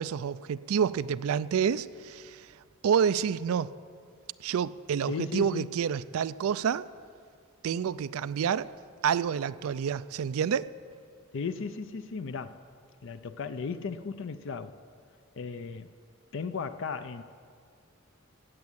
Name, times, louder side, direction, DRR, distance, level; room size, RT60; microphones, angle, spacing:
voice 1, 0.0-2.5 2.8-3.7 4.4-6.8 7.6-8.7 9.0-10.7, right 7 dB, 80° right, 16 dB, 0.4 m, -28 dB
voice 2, 5.1-5.7 11.3-12.6 13.0-14.8 15.4-15.9 16.3-17.2, left 5 dB, 60° left, 11 dB, 0.5 m, -35 dB
15.5 x 8.4 x 8.0 m, 2.2 s
head